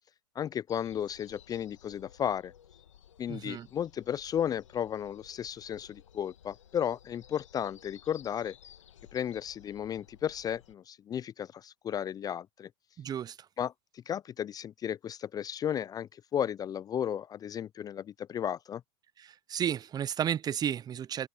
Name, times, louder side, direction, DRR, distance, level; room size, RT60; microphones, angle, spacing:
voice 1, 0.4-2.5 3.2-8.5 9.1-12.7 13.6-18.8, left 9 dB, 25° left, 0.5 m, -34 dB
sound 1, 0.7-10.7, left 9 dB, 75° left, 2.2 m, -57 dB
voice 2, 3.3-3.7 13.0-13.4 19.2-21.3, right 9 dB, 25° right, 0.7 m, -33 dB
open air
hypercardioid pair, 95°, 16 cm